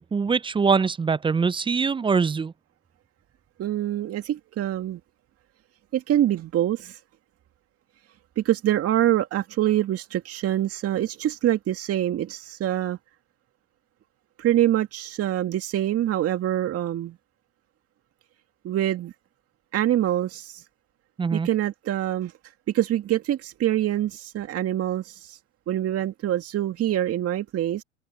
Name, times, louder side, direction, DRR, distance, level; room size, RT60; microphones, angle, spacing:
voice 1, 0.1-2.5 21.2-21.5, right 5 dB, 15° right, 0.6 m, -23 dB
voice 2, 3.6-5.0 5.9-7.0 8.4-13.0 14.4-17.2 18.6-19.1 19.7-20.6 21.3-22.3 22.7-25.4 25.7-27.8, right 12 dB, 40° right, 2.2 m, -25 dB
open air
hypercardioid pair, 85°, 37 cm